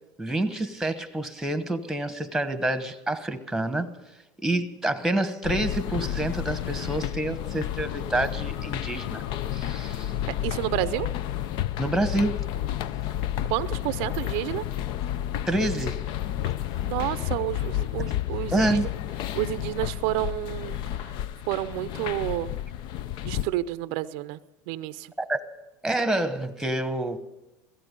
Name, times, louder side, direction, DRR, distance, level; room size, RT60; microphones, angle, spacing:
voice 1, 0.2-3.9 4.4-9.3 9.5-10.1 11.8-12.5 15.5-16.0 18.5-18.9 25.2-25.4 25.8-27.2, right 1 dB, 5° right, 1.1 m, -27 dB
sound 1, 5.4-23.5, left 12 dB, 55° left, 0.6 m, -31 dB
voice 2, 10.4-11.1 13.5-14.6 16.8-18.8 19.4-20.8 21.5-22.5 23.2-24.4 24.7-25.1, right 16 dB, 65° right, 0.5 m, -29 dB
16.5 x 15.0 x 5.3 m
supercardioid pair, 110°, 9 cm